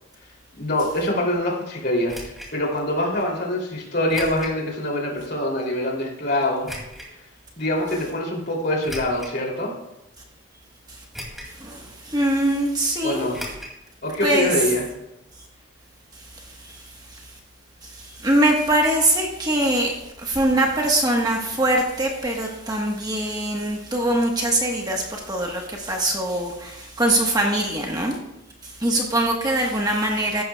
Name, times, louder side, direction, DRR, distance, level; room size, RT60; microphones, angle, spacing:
voice 1, 0.5-6.7 7.6-9.7 13.0-13.4 14.0-14.9, left 1 dB, 50° left, -1 dB, 2.9 m, -24 dB
sound 1, 2.1-2.5 4.1-4.6 5.1-5.2 6.6-7.1 8.8-9.4 10.0-10.1 11.1-11.6 11.9-12.0 13.3-13.8 14.1-14.2 14.4-14.5, equal, ahead, 2.4 m, -36 dB
voice 2, 11.6-13.3 14.2-14.5 16.6-16.8 18.2-28.2 28.6-30.4, right 1 dB, 20° right, 0 dB, 1.2 m, -22 dB
15.0 x 11.5 x 2.3 m, 0.90 s
head